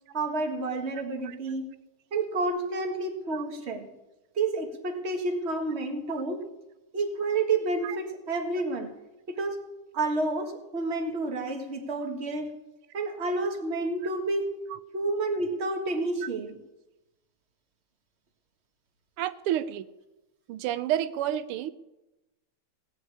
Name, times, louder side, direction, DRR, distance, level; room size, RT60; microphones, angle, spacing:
voice 1, 0.1-1.7 2.1-3.9 4.4-6.5 6.9-8.9 9.3-9.6 9.9-12.5 12.9-14.5 14.9-16.6, right 3 dB, 30° right, 4 dB, 1.7 m, -29 dB
voice 2, 19.2-19.8 20.5-21.7, right 11 dB, 85° right, 13 dB, 1.6 m, -30 dB
17.0 x 6.4 x 9.7 m, 1.0 s
omnidirectional pair, 2.4 m